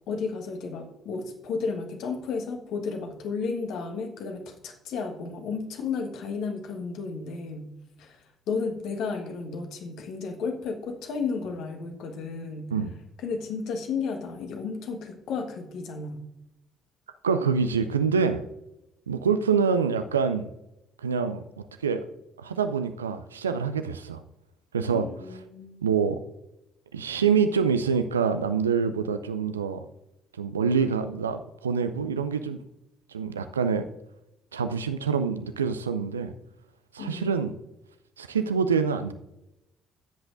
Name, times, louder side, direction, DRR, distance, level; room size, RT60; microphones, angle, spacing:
voice 1, 0.1-7.7 8.0-12.7 13.2-16.3 24.9-25.9 37.0-37.3, left 4 dB, 55° left, 4 dB, 1.4 m, -33 dB
voice 2, 17.2-18.4 19.1-20.5 21.0-21.4 21.8-22.0 22.4-24.2 24.7-25.1 25.8-26.2 26.9-29.9 30.4-32.6 33.1-33.9 34.5-36.3 36.9-37.6 38.2-39.1, right 6 dB, 80° right, 10 dB, 0.4 m, -26 dB
16.5 x 8.0 x 2.6 m, 0.90 s
figure-of-eight pair, 50°, 0 cm